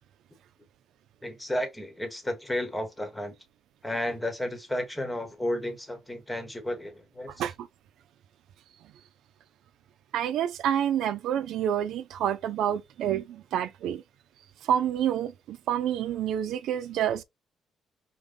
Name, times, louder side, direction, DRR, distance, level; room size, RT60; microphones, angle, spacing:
voice 1, 1.2-3.4 3.8-7.3, left 1 dB, 5° left, 1.1 m, -32 dB
voice 2, 10.1-14.0 14.6-17.2, right 10 dB, 80° right, 0.4 m, -28 dB
5.3 x 2.1 x 3.7 m
cardioid pair, 175°, 0 cm